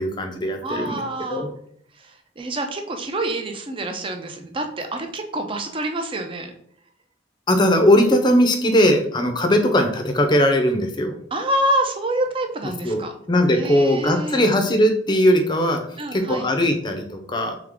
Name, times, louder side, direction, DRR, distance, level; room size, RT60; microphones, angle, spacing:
voice 1, 0.0-1.5 7.5-11.2 12.8-15.8 16.1-17.6, equal, 25° left, 5 dB, 0.5 m, -19 dB
voice 2, 0.6-1.5 2.0-6.5 11.3-13.1 13.5-14.4 16.0-16.5, right 1 dB, 30° right, 5 dB, 0.5 m, -27 dB
3.6 x 3.4 x 3.5 m, 0.65 s
head